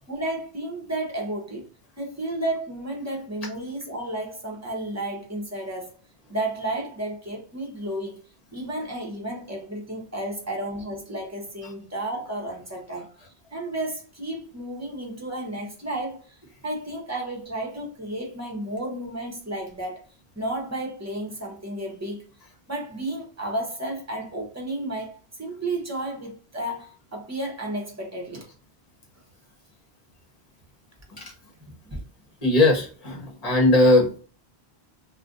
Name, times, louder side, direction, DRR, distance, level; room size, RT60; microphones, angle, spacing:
voice 1, 0.1-1.7 2.0-6.0 6.3-8.2 8.5-20.0 20.3-22.3 22.7-28.5 31.9-32.0, right 1 dB, 15° right, 0.7 m, -32 dB
voice 2, 32.4-34.1, left 2 dB, 40° left, 0.9 m, -19 dB
2.4 x 2.2 x 3.7 m
omnidirectional pair, 1.1 m